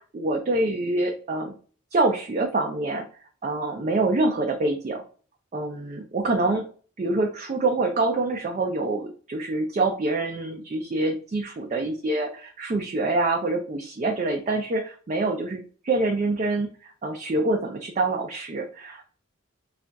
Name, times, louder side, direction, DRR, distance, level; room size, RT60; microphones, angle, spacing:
voice 1, 0.0-1.5 1.9-3.0 3.4-5.0 5.5-6.7 7.0-19.1, right 2 dB, 35° right, 1 dB, 0.4 m, -26 dB
2.4 x 2.2 x 3.8 m, 0.41 s
head